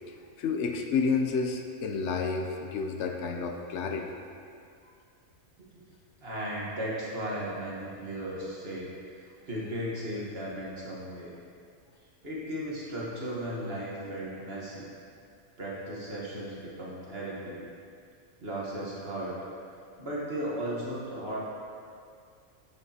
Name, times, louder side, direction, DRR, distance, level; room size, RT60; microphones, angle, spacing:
voice 1, 0.4-4.2, left 5 dB, 65° left, 3 dB, 0.8 m, -30 dB
voice 2, 6.2-8.9 9.2-11.3 12.2-14.9 15.6-17.7 18.4-19.3 20.0-21.4, right 1 dB, 45° right, -6 dB, 1.5 m, -36 dB
9.1 x 6.6 x 2.8 m, 2.4 s
omnidirectional pair, 1.4 m